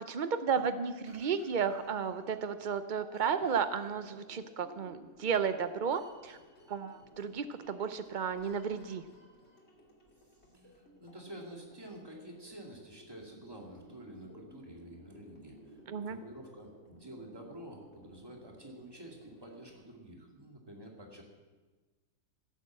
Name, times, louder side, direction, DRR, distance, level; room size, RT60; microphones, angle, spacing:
voice 1, 0.1-6.4 6.7-9.0 15.9-16.2, right 6 dB, 80° right, 10 dB, 0.4 m, -33 dB
sound 1, 1.0-19.8, equal, 40° left, 3.0 m, -57 dB
voice 2, 10.5-15.8 16.1-21.2, right 1 dB, 15° right, 0 dB, 2.3 m, -49 dB
16.5 x 8.2 x 7.5 m, 1.3 s
omnidirectional pair, 1.7 m